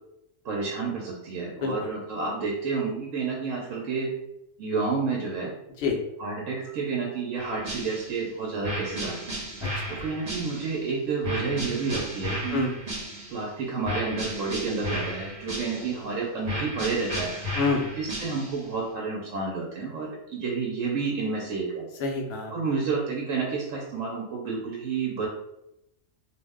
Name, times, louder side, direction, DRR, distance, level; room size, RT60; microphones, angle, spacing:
voice 1, 0.4-4.1 4.6-5.5 6.2-9.4 9.9-12.7 13.3-17.3 18.0-21.9 22.5-25.3, right 4 dB, 80° right, -2 dB, 1.0 m, -30 dB
voice 2, 1.6-1.9 5.8-6.0 9.6-10.0 12.5-12.7 15.8-15.9 17.6-17.9 22.0-22.5, left 4 dB, 60° left, 2 dB, 0.7 m, -28 dB
sound 1, 7.4-8.2 8.6-10.8 11.2-13.5 13.8-16.1 16.4-18.7, equal, 40° right, 0.9 m, -34 dB
2.5 x 2.1 x 3.4 m, 0.84 s
omnidirectional pair, 1.3 m